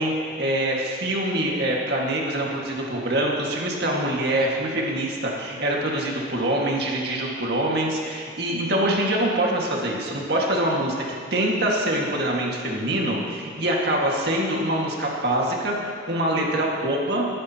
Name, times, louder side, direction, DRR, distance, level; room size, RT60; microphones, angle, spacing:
voice 1, 0.0-11.0 11.3-17.2, right 1 dB, 60° right, -2 dB, 1.9 m, -24 dB
20.0 x 10.0 x 3.0 m, 2.1 s
head